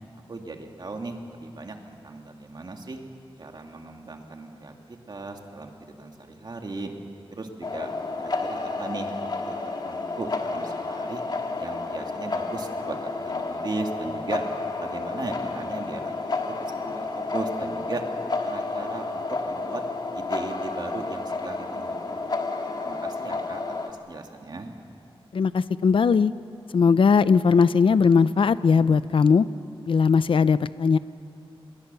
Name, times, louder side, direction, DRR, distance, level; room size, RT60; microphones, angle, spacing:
voice 1, 0.3-3.0 3.4-6.9 7.3-7.9 8.2-9.5 9.8-11.2 11.6-14.4 14.8-18.0 18.4-19.8 20.1-22.4 22.8-24.7, right 3 dB, 50° right, 3 dB, 2.2 m, -37 dB
sound 1, 7.6-23.9, left 3 dB, 50° left, 1.7 m, -31 dB
voice 2, 25.3-26.3 26.7-29.5 29.9-31.0, left 5 dB, 65° left, 15 dB, 0.6 m, -19 dB
26.0 x 21.5 x 6.9 m, 2.6 s
wide cardioid pair, 135°, 10 cm